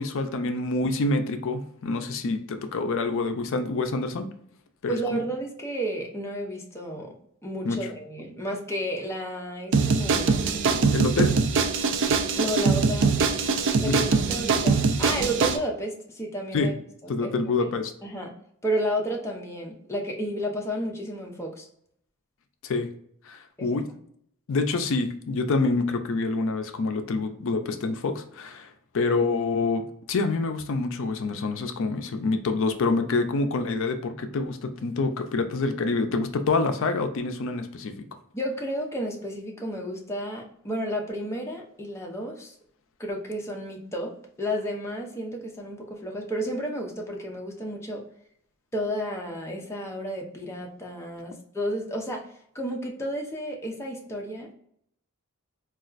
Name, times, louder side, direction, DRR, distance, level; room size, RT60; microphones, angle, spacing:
voice 1, 0.0-4.3 4.8-5.2 7.6-7.8 10.9-11.3 13.8-14.0 16.5-16.7 17.1-17.9 22.6-22.9 23.3-23.9 24.5-28.7 28.9-29.8 30.1-38.0, left 3 dB, 65° left, 7 dB, 0.4 m, -26 dB
voice 2, 4.9-7.1 7.4-10.9 12.4-13.1 13.8-16.7 17.0-17.3 18.0-18.3 18.6-21.7 23.6-23.8 38.3-42.5 43.0-44.1 44.4-48.0 48.7-52.2 52.5-54.5, equal, 10° left, 0 dB, 0.6 m, -32 dB
sound 1, 9.7-15.6, right 4 dB, 60° right, 0.4 m, -23 dB
4.1 x 2.4 x 2.4 m, 0.68 s
head